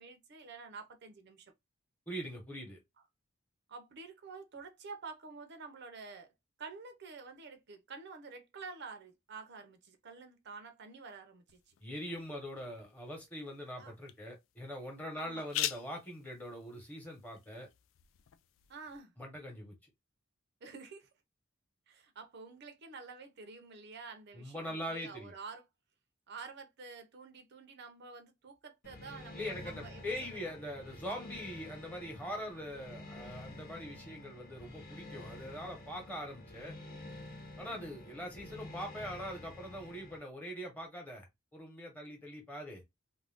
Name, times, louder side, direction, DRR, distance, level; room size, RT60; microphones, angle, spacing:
voice 1, 0.0-1.5 3.7-6.3 6.6-11.7 13.8-13.9 15.1-15.5 18.7-19.1 20.6-21.1 21.9-25.6 26.3-30.5 37.6-37.9, right 4 dB, 60° right, 0.6 m, -49 dB
voice 2, 2.1-2.8 11.8-17.7 19.2-19.7 24.3-25.3 29.3-36.8 37.6-41.3 41.5-42.8, equal, 10° left, 1.0 m, -42 dB
sound 1, 11.5-19.0, left 12 dB, 75° left, 0.3 m, -45 dB
sound 2, 28.8-40.2, left 1 dB, 50° left, 0.8 m, -49 dB
2.5 x 2.2 x 3.4 m
head